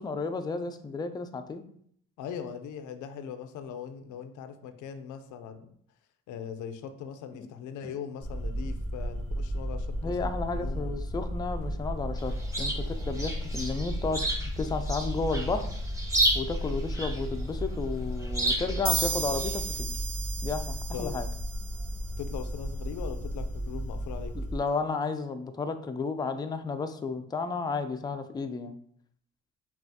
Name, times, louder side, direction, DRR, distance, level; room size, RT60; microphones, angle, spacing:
voice 1, 0.0-1.6 10.0-14.2 14.6-15.7 16.3-19.9 20.4-21.3 24.4-28.7, left 4 dB, 15° left, 8 dB, 0.3 m, -32 dB
voice 2, 2.2-5.7 6.3-10.9 20.9-21.2 22.2-24.3, left 7 dB, 80° left, 8 dB, 0.5 m, -40 dB
sound 1, 8.2-24.6, equal, 50° right, 1.5 m, -34 dB
Chirp tweet, 12.2-19.8, right 1 dB, 10° right, 0.9 m, -33 dB
sound 2, 18.9-22.4, right 6 dB, 75° right, 0.6 m, -35 dB
5.5 x 2.4 x 2.7 m, 0.64 s
cardioid pair, 90°, 30 cm